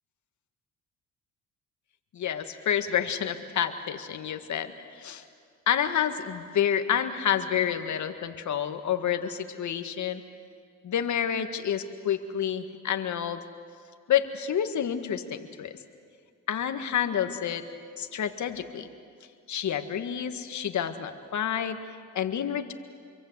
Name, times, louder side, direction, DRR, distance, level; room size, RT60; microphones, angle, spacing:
voice 1, 2.1-5.2 5.7-10.2 10.8-13.5 14.1-15.8 16.5-17.7 18.0-18.9 19.5-21.8 22.1-22.7, left 9 dB, 60° left, 8 dB, 1.9 m, -29 dB
27.0 x 23.5 x 8.2 m, 2.2 s
cardioid pair, 90°, 33 cm